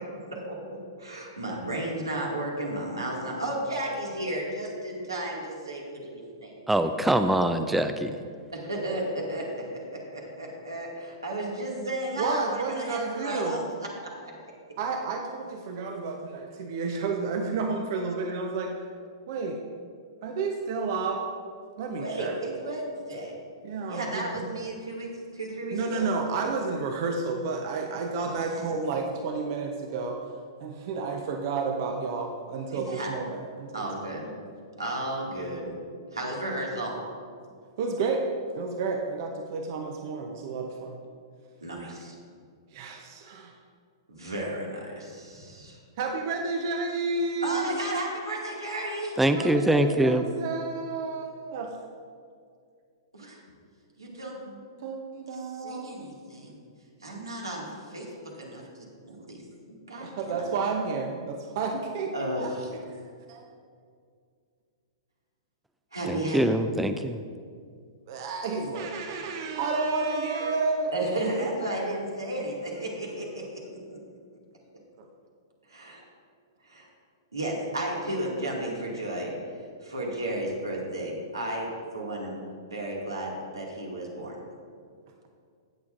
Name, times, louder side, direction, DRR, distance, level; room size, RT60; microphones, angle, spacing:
voice 1, 0.0-6.7 8.5-13.6 14.0-14.3 21.9-23.4 23.9-26.1 28.5-28.7 32.7-33.1 33.7-34.3 34.8-35.7 36.1-36.9 41.6-42.1 44.1-45.8 47.4-49.2 53.1-53.4 54.0-54.4 55.3-56.6 57.0-60.4 62.1-62.7 65.9-66.6 70.9-74.0 75.7-76.0 76.6-76.9 77.3-79.3 79.8-82.4 82.7-84.4, right 1 dB, 90° right, -2 dB, 2.1 m, -33 dB
voice 2, 6.7-8.1 49.2-50.2 66.1-67.2, right 1 dB, 5° right, 9 dB, 0.4 m, -23 dB
voice 3, 12.2-13.6 14.8-18.9 19.3-19.6 20.2-21.2 21.8-22.4 23.6-24.5 25.7-30.2 30.6-34.1 37.0-37.1 37.8-38.3 38.5-41.0 41.8-42.0 42.7-43.5 46.0-47.8 49.3-51.7 54.1-55.9 60.0-62.5 68.1-70.9 71.2-71.3 75.0-75.1, right 4 dB, 55° right, 3 dB, 0.7 m, -31 dB
17.0 x 7.0 x 2.5 m, 2.2 s
figure-of-eight pair, 110°, 2 cm